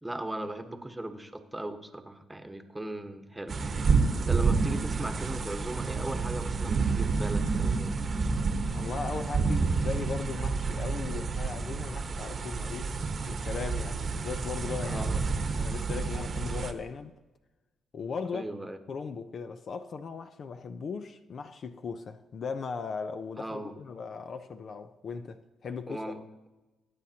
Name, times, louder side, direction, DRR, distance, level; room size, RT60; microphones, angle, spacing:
voice 1, 0.0-8.0 14.8-15.2 18.3-18.8 23.4-23.8 25.9-26.5, right 1 dB, 10° right, 1.2 m, -38 dB
sound 1, 3.5-16.7, right 4 dB, 45° right, 1.1 m, -29 dB
voice 2, 8.7-15.1 15.4-17.1 17.9-18.4 18.9-26.1, left 5 dB, 50° left, 0.7 m, -38 dB
21.5 x 9.4 x 2.9 m
cardioid pair, 90°, 0 cm